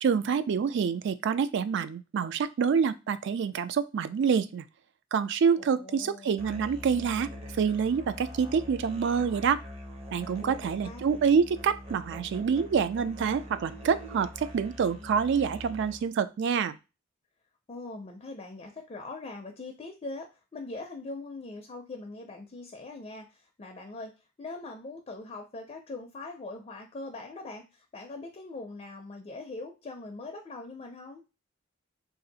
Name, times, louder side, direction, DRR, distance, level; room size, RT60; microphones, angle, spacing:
voice 1, 0.0-4.6 5.1-7.3 7.6-9.6 10.1-16.8, right 6 dB, 60° right, 13 dB, 0.3 m, -27 dB
voice 2, 5.6-6.3 10.4-11.0 17.7-24.1 24.4-31.2, left 2 dB, 30° left, 3 dB, 0.4 m, -42 dB
Musical instrument, 6.4-16.2, equal, 30° right, 0.7 m, -43 dB
2.6 x 2.4 x 3.9 m, 0.29 s
head